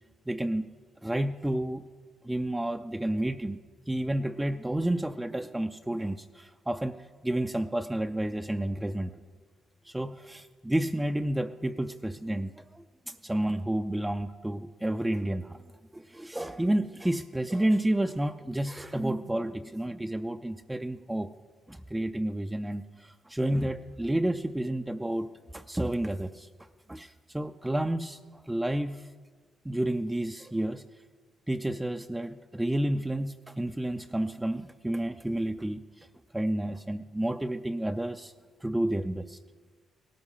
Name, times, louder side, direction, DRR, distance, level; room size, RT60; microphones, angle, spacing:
voice 1, 0.3-0.7 1.0-1.8 2.2-3.6 3.9-7.0 7.2-9.1 9.8-15.6 15.9-21.3 21.7-25.3 25.5-26.5 26.9-29.1 29.6-30.8 31.5-36.1 36.3-38.3 38.6-39.4, right 1 dB, 10° right, 8 dB, 0.5 m, -30 dB
18.0 x 12.5 x 5.6 m, 1.5 s
cardioid pair, 90°, 0 cm